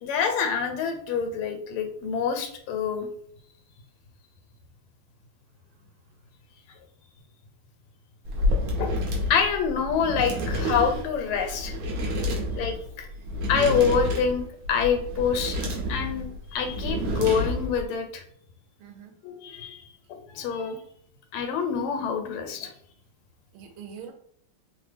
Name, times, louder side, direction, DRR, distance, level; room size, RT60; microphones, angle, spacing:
voice 1, 0.0-3.1 8.8-9.0 9.3-11.7 12.5-13.1 13.5-18.2 19.2-19.8 20.1-20.8 21.3-22.7, left 6 dB, 90° left, 1.5 m, -26 dB
sound 1, 8.2-17.9, left 1 dB, 65° right, 1.2 m, -29 dB
voice 2, 12.1-12.5 16.0-16.4 18.8-19.2 23.5-24.1, right 7 dB, 80° right, 1.5 m, -45 dB
3.5 x 2.0 x 3.2 m
omnidirectional pair, 2.3 m